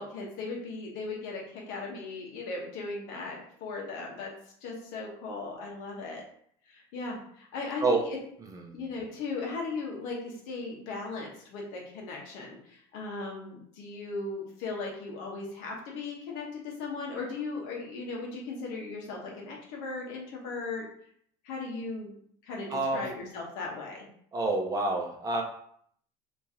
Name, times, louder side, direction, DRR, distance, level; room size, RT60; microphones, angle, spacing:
voice 1, 0.0-4.3 4.6-6.2 6.7-8.2 8.7-20.8 21.4-22.1 22.4-24.0, left 3 dB, 75° left, -1 dB, 1.1 m, -37 dB
voice 2, 22.7-23.0 24.3-25.4, right 3 dB, 25° right, 1 dB, 0.7 m, -28 dB
3.0 x 2.8 x 3.6 m, 0.65 s
supercardioid pair, 115°, 14 cm